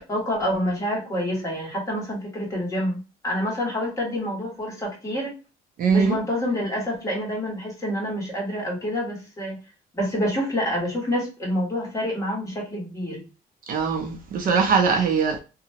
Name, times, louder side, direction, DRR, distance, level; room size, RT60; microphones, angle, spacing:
voice 1, 0.0-5.3 5.9-9.6 9.9-13.3, equal, 20° left, 1.5 m, -27 dB
voice 2, 5.8-6.2 13.7-15.4, right 5 dB, 55° right, 0.6 m, -21 dB
2.8 x 2.2 x 2.8 m
cardioid pair, 110°, 17 cm